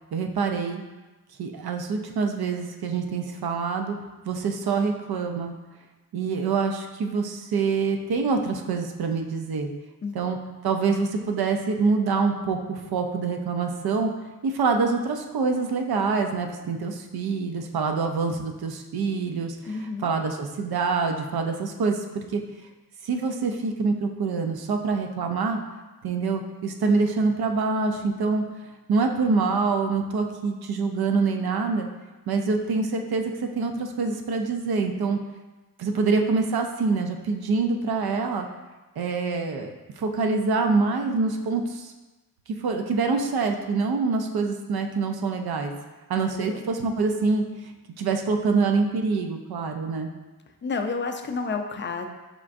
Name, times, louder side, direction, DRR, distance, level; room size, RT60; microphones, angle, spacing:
voice 1, 0.1-0.8 1.4-4.0 4.3-5.5 6.1-9.7 10.1-10.4 10.6-14.1 14.4-22.4 23.0-25.6 26.0-28.4 28.9-31.9 32.3-35.2 35.8-38.5 39.0-41.9 42.6-45.7 46.1-47.7 48.0-50.1, right 4 dB, 75° right, 4 dB, 0.5 m, -25 dB
voice 2, 19.6-20.1 46.3-46.6 50.6-52.1, left 4 dB, 30° left, 5 dB, 0.4 m, -30 dB
5.1 x 3.4 x 2.5 m, 1.2 s
wide cardioid pair, 80°, 38 cm